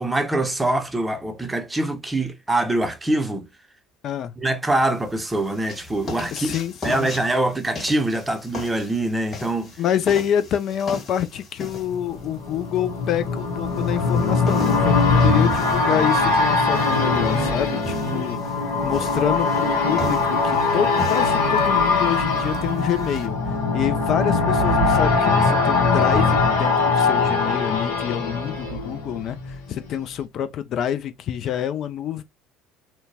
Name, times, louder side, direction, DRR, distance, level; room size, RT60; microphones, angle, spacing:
voice 1, 0.0-3.5 4.4-6.6 6.8-9.7, right 1 dB, 10° right, 0.6 m, -24 dB
sound 1, 4.7-23.3, left 1 dB, 30° left, 1.8 m, -38 dB
voice 2, 6.3-7.1 9.8-32.2, left 9 dB, 50° left, 0.4 m, -27 dB
sound 2, 11.7-29.5 29.9-30.0, left 3 dB, 80° left, 0.9 m, -21 dB
2.7 x 2.1 x 2.7 m
hypercardioid pair, 65°, 0 cm